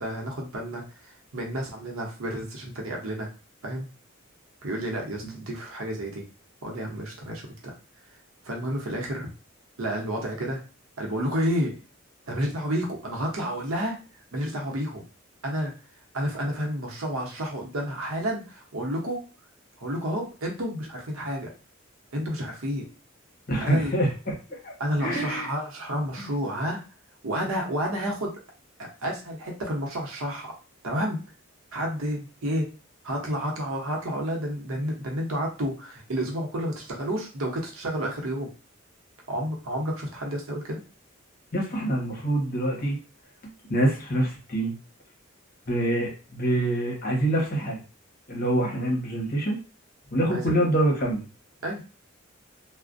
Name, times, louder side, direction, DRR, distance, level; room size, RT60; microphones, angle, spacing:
voice 1, 0.0-3.3 3.6-3.9 4.6-6.2 6.6-7.7 8.4-9.3 9.8-10.6 11.0-11.8 12.3-14.0 14.3-15.0 15.4-15.7 16.1-19.2 19.8-21.5 22.1-22.9 23.6-24.0 24.8-26.8 27.2-28.3 28.8-30.5 30.8-31.2 31.7-32.7 33.0-38.5 39.3-40.8 50.3-50.6 51.6-51.8, equal, 80° right, 0 dB, 0.7 m, -30 dB
voice 2, 23.5-24.7 25.0-25.5 26.2-26.3 41.5-43.0 43.7-44.7 45.7-47.8 48.3-49.6 50.1-51.3, right 1 dB, 45° left, -1 dB, 0.9 m, -25 dB
2.4 x 2.1 x 2.5 m, 0.34 s
head